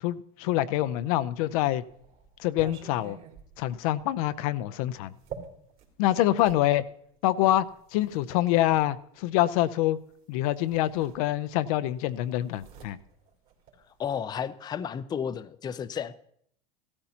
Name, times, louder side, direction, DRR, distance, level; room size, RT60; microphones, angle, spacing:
voice 1, 0.0-1.8 2.4-3.2 3.6-5.1 6.0-6.8 7.2-7.7 7.9-10.0 10.3-13.0, left 14 dB, 70° left, 14 dB, 0.6 m, -25 dB
sound 1, 1.3-6.6 7.5-8.9 10.1-10.2 10.6-11.7 11.9-14.2, right 6 dB, 50° right, 3.0 m, -48 dB
voice 2, 14.0-16.1, left 8 dB, 20° left, 13 dB, 0.5 m, -32 dB
16.0 x 13.0 x 2.8 m, 0.68 s
supercardioid pair, 120°, 19 cm